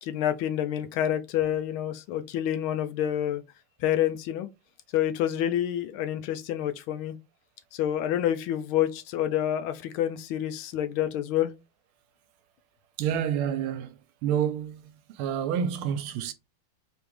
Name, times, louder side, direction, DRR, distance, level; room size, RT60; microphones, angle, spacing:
voice 1, 0.0-3.4 3.8-4.5 4.9-7.1 7.7-11.5, left 11 dB, 80° left, 1.4 m, -28 dB
voice 2, 13.0-16.3, right 8 dB, 85° right, 1.5 m, -29 dB
3.8 x 3.5 x 3.1 m
omnidirectional pair, 2.4 m